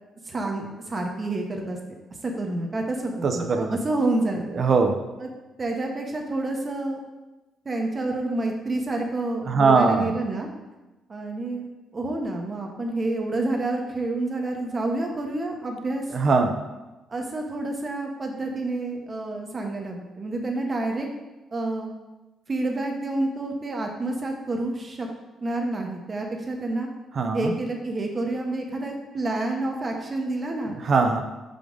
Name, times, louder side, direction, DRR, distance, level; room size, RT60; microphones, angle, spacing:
voice 1, 0.2-1.8 2.2-4.6 5.2-5.3 5.6-7.0 7.6-10.5 11.1-11.7 11.9-16.0 17.1-21.1 21.5-21.9 22.5-25.1 25.4-26.9 27.3-30.7, right 2 dB, 35° right, 2 dB, 1.0 m, -28 dB
voice 2, 3.2-3.8 4.5-5.0 9.5-10.1 16.1-16.6 27.1-27.5 30.8-31.2, right 4 dB, 50° right, 6 dB, 0.7 m, -21 dB
5.2 x 4.9 x 3.9 m, 1.1 s
cardioid pair, 90°, 0 cm